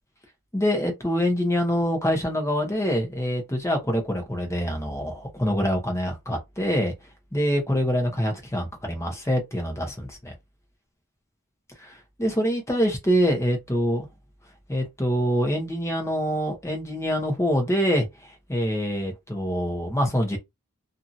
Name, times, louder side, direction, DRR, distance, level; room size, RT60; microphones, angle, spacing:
voice 1, 0.5-6.9 7.3-10.3 11.8-14.1 14.7-20.4, equal, 15° left, 0.9 m, -25 dB
2.8 x 2.6 x 2.6 m
head